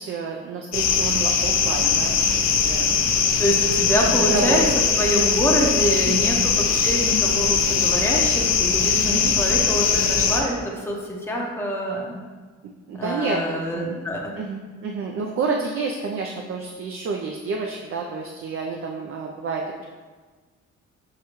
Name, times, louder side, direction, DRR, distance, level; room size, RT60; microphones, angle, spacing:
voice 1, 0.0-3.4 4.3-4.8 6.0-6.3 9.1-9.3 12.9-14.0 14.4-19.9, right 4 dB, 45° right, 1 dB, 0.4 m, -29 dB
sound 1, 0.7-10.4, left 6 dB, 60° left, 0.5 m, -21 dB
voice 2, 3.4-4.6 5.0-12.2 13.0-14.4, equal, 10° left, -1 dB, 0.7 m, -25 dB
6.5 x 2.2 x 3.0 m, 1.4 s
cardioid pair, 90°, 30 cm